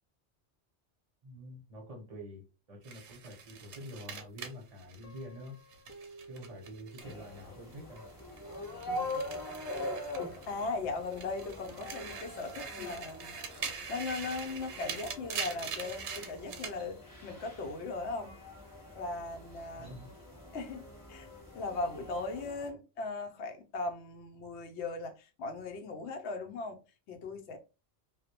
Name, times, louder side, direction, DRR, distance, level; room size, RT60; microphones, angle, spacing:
voice 1, 1.2-5.6 6.3-8.0 19.8-20.1, equal, 40° right, 0.7 m, -47 dB
sound 1, 2.8-7.4 7.7-10.7 11.0-16.8, right 6 dB, 80° right, 0.9 m, -43 dB
Guitar, 5.0-7.5 8.2-10.1, right 2 dB, 60° left, 0.3 m, -54 dB
sound 2, 7.0-22.7, left 2 dB, 20° left, 0.7 m, -43 dB
voice 2, 8.9-9.3 9.7-9.8 10.2-18.4 18.9-19.9 20.5-21.3 21.5-26.8 27.1-27.6, left 3 dB, 80° left, 0.8 m, -39 dB
2.2 x 2.0 x 2.8 m
omnidirectional pair, 1.1 m